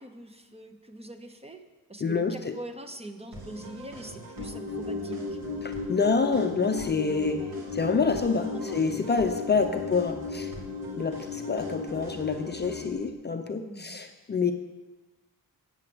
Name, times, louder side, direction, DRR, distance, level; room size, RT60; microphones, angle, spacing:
voice 1, 0.0-1.6 1.9-5.4 8.5-8.8 9.4-9.9 13.7-14.0, right 1 dB, 15° right, 7 dB, 0.9 m, -43 dB
voice 2, 2.0-2.5 5.6-7.4 7.7-10.5 11.0-14.5, left 4 dB, 30° left, 6 dB, 0.6 m, -27 dB
sound 1, 3.3-12.9, right 1 dB, 70° right, 2.4 m, -44 dB
sound 2, 4.4-13.1, left 4 dB, 50° right, 2.0 m, -36 dB
8.9 x 7.3 x 7.8 m, 1.2 s
cardioid pair, 110°, 36 cm